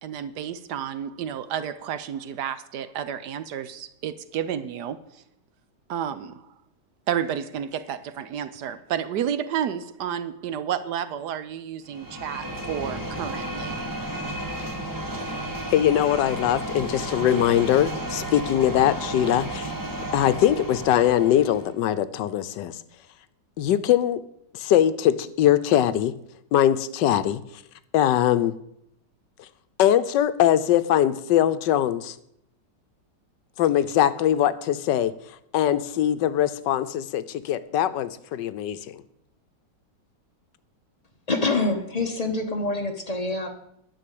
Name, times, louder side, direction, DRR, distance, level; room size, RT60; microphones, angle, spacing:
voice 1, 0.0-5.2 5.9-6.5 7.1-13.8, right 9 dB, 70° right, 13 dB, 1.2 m, -31 dB
sound 1, 11.9-21.7, right 1 dB, 15° right, 1.2 m, -33 dB
voice 2, 15.7-19.7 20.1-22.7 23.6-24.2 24.5-26.1 26.5-27.4 27.9-28.5 29.8-32.1 33.6-35.1 35.5-39.0, left 11 dB, 80° left, 13 dB, 1.3 m, -22 dB
voice 3, 41.3-43.5, left 3 dB, 25° left, 3 dB, 1.2 m, -26 dB
11.5 x 6.1 x 8.4 m, 0.76 s
omnidirectional pair, 1.9 m